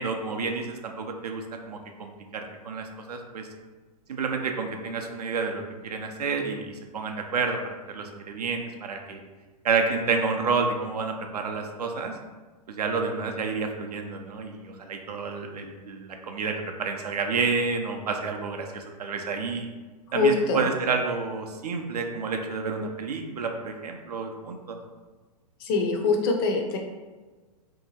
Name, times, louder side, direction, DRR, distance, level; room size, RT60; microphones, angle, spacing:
voice 1, 0.0-3.5 4.1-9.2 9.6-12.1 12.7-19.7 20.1-24.8, right 4 dB, 70° right, 4 dB, 0.4 m, -30 dB
voice 2, 20.1-20.7 25.6-26.8, left 3 dB, 35° left, 2 dB, 0.4 m, -23 dB
2.7 x 2.3 x 2.7 m, 1.3 s
figure-of-eight pair, 105°, 21 cm